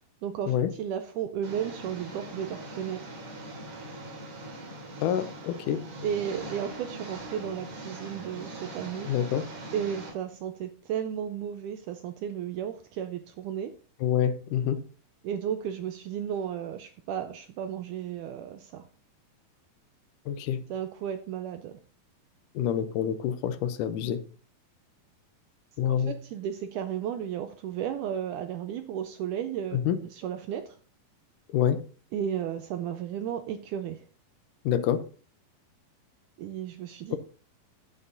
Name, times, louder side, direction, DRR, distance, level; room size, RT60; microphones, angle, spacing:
voice 1, 0.2-3.2 6.0-9.1 9.7-13.7 15.2-18.8 20.7-21.8 25.9-30.8 32.1-34.0 36.4-37.2, right 9 dB, 80° right, 1.9 m, -34 dB
Engine, 1.4-10.1, right 1 dB, 65° right, 4.8 m, -41 dB
voice 2, 5.0-5.9 9.1-9.5 14.0-14.8 20.3-20.6 22.6-24.2 25.8-26.2 29.7-30.0 31.5-31.8 34.7-35.0, left 9 dB, 75° left, 2.1 m, -27 dB
11.0 x 8.2 x 2.7 m
omnidirectional pair, 4.1 m